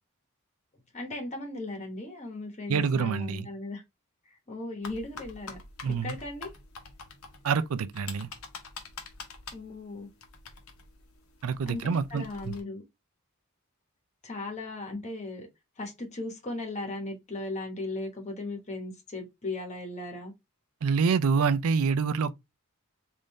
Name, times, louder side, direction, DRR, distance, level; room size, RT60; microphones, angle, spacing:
voice 1, 0.9-3.8 4.5-5.6 5.8-6.5 9.5-10.1 11.7-12.8 14.2-15.5 15.8-20.3, left 2 dB, 30° left, 1.1 m, -37 dB
voice 2, 2.7-3.5 5.8-6.2 7.4-8.3 11.4-12.5 20.8-22.3, right 5 dB, 70° right, 0.4 m, -26 dB
sound 1, 4.8-12.6, left 4 dB, 70° left, 0.8 m, -46 dB
3.6 x 2.6 x 3.0 m
head